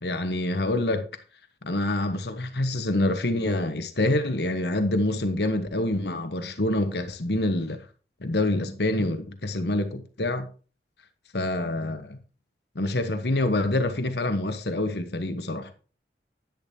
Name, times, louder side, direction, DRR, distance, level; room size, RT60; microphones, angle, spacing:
voice 1, 0.0-1.0 1.6-7.8 8.2-10.5 11.3-12.2 12.7-15.7, left 1 dB, 70° left, 1.2 m, -26 dB
10.5 x 10.0 x 2.8 m
head